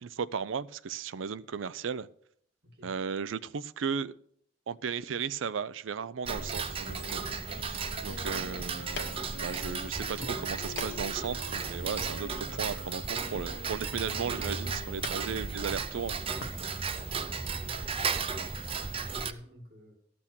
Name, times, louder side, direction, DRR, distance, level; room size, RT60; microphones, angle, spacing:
voice 1, 0.0-2.1 2.8-4.1 4.7-16.2, right 6 dB, 85° right, 0.5 m, -36 dB
voice 2, 2.6-2.9 17.0-20.0, left 1 dB, 55° right, 2.3 m, -51 dB
sound 1, 6.2-16.3, left 5 dB, 85° left, 0.5 m, -48 dB
Tick-tock, 6.2-19.3, right 5 dB, 30° right, 0.5 m, -35 dB
sound 2, 8.1-16.6, left 3 dB, 65° left, 1.2 m, -47 dB
13.5 x 6.1 x 6.0 m
head